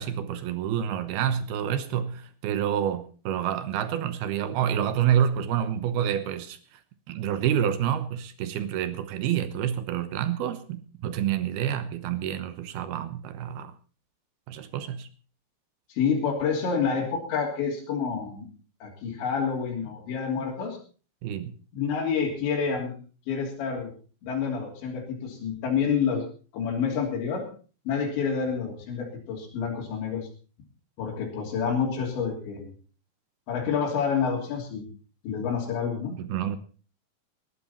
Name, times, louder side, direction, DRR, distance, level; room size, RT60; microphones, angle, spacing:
voice 1, 0.0-6.6 7.1-13.7 14.5-15.1 21.2-21.5 36.2-36.6, right 9 dB, 75° right, 2.7 m, -28 dB
voice 2, 15.9-18.5 18.8-20.8 21.7-22.9 23.3-23.9 24.2-26.3 26.5-27.5 27.9-30.3 31.0-32.7 33.5-34.9 35.2-36.2, left 6 dB, 85° left, 5.4 m, -28 dB
19.0 x 11.5 x 4.3 m
omnidirectional pair, 5.0 m